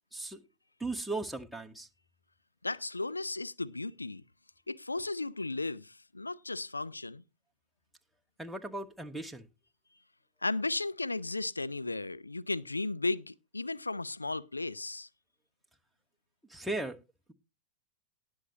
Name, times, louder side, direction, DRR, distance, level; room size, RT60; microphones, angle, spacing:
voice 1, 0.1-0.4 0.8-1.9 8.4-9.5 16.5-17.0, right 2 dB, ahead, 1.1 m, -37 dB
voice 2, 2.6-4.2 4.7-7.2 10.4-15.1, left 2 dB, 80° left, 0.5 m, -35 dB
19.0 x 6.5 x 2.8 m
figure-of-eight pair, 90°, 0 cm